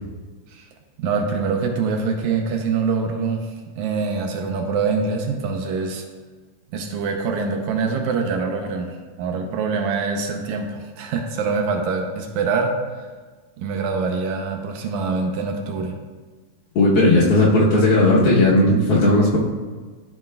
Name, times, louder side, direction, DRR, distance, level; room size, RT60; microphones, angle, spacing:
voice 1, 1.0-3.5 3.7-6.0 6.7-12.7 13.6-15.9, right 4 dB, 80° right, 3 dB, 1.7 m, -24 dB
voice 2, 16.7-19.4, left 1 dB, 80° left, -7 dB, 1.3 m, -16 dB
13.5 x 5.5 x 2.3 m, 1.4 s
omnidirectional pair, 4.1 m